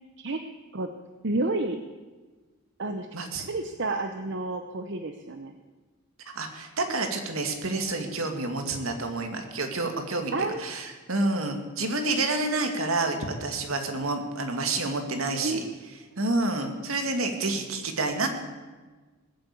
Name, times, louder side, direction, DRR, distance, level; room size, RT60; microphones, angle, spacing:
voice 1, 1.2-1.8 2.8-3.1 3.4-5.5 10.3-10.6 15.4-15.7, right 2 dB, 55° right, 6 dB, 0.8 m, -30 dB
voice 2, 3.1-3.5 6.3-10.3 10.6-15.6 16.2-18.3, right 2 dB, 75° right, 5 dB, 2.2 m, -29 dB
20.0 x 7.8 x 8.3 m, 1.3 s
head